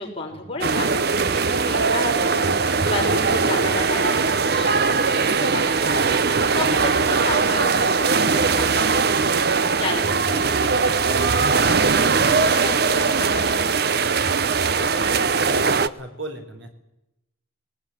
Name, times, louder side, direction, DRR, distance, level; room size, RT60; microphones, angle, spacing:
voice 1, 0.0-5.6 5.9-9.1 9.6-13.6, left 2 dB, 30° left, -1 dB, 6.3 m, -32 dB
sound 1, 0.6-15.9, right 4 dB, 50° right, 0.8 m, -20 dB
sound 2, 2.1-9.7, left 2 dB, ahead, 2.8 m, -42 dB
voice 2, 14.6-16.7, right 1 dB, 75° right, 5 dB, 4.3 m, -38 dB
20.0 x 19.0 x 9.8 m, 0.87 s
head